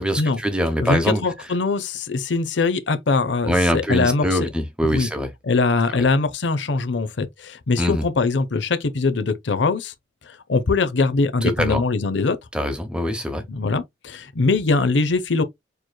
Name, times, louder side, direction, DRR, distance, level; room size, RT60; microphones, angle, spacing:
voice 1, 0.0-1.2 3.4-5.3 5.9-6.0 7.8-8.0 11.4-11.8 12.5-13.4, equal, 5° right, 0.9 m, -23 dB
voice 2, 0.8-4.4 4.8-5.1 5.4-9.9 10.2-12.4 13.5-15.4, left 3 dB, 80° left, 0.6 m, -22 dB
6.8 x 3.0 x 2.2 m
head